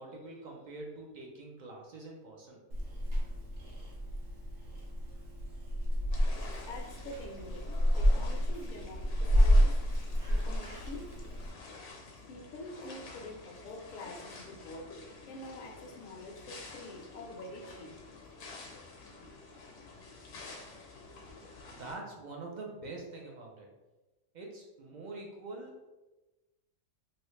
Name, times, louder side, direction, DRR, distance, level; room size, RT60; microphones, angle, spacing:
voice 1, 0.0-2.6 21.7-23.7 24.3-25.9, right 2 dB, 55° right, -1 dB, 0.5 m, -45 dB
Purr / Meow, 2.7-11.5, equal, 85° right, 1.1 m, -29 dB
sound 1, 6.1-22.0, left 3 dB, 70° left, 0.9 m, -49 dB
voice 2, 6.7-9.9 10.3-11.1 12.3-15.0 15.3-18.0, left 2 dB, 55° left, 1 dB, 0.6 m, -46 dB
3.0 x 2.7 x 3.1 m, 1.1 s
omnidirectional pair, 1.3 m